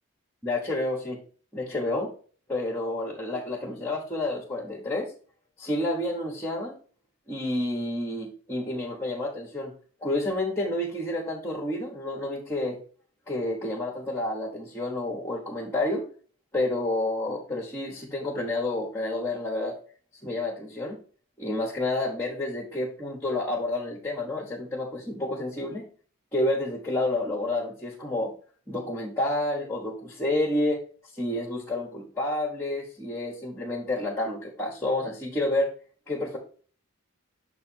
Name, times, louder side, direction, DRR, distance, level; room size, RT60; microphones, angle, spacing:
voice 1, 0.4-1.2 1.5-2.1 2.5-5.1 5.6-6.8 7.3-9.7 10.0-12.8 13.3-16.0 16.5-19.7 20.2-21.0 21.4-25.8 26.3-28.3 28.7-30.8 31.1-35.7 36.1-36.4, left 1 dB, 10° left, -2 dB, 1.1 m, -29 dB
6.7 x 3.4 x 4.4 m, 0.42 s
head